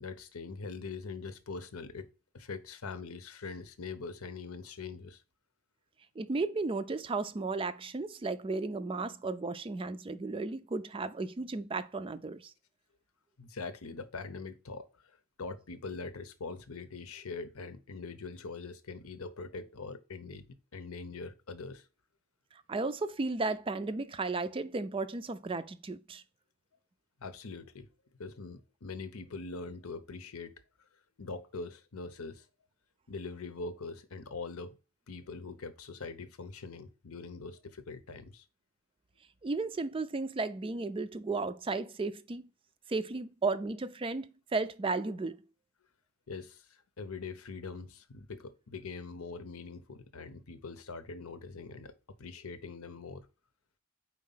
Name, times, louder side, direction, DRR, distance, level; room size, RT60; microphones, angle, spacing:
voice 1, 0.0-2.1 2.3-5.2 13.4-21.9 27.2-27.9 28.2-30.5 31.2-32.5 33.1-34.8 35.1-38.4 46.3-53.3, left 4 dB, 85° left, 0.8 m, -43 dB
voice 2, 6.2-12.5 22.7-26.2 39.4-42.4 42.9-45.4, right 3 dB, 25° right, 0.3 m, -34 dB
4.7 x 4.1 x 5.4 m
head